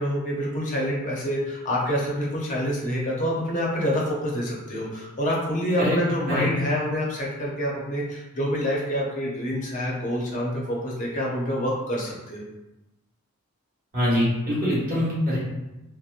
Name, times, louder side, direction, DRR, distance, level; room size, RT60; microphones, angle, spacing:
voice 1, 0.0-12.4, equal, 35° left, -3 dB, 0.6 m, -27 dB
voice 2, 13.9-15.4, equal, 40° right, -8 dB, 1.1 m, -23 dB
2.7 x 2.0 x 2.4 m, 1.0 s
head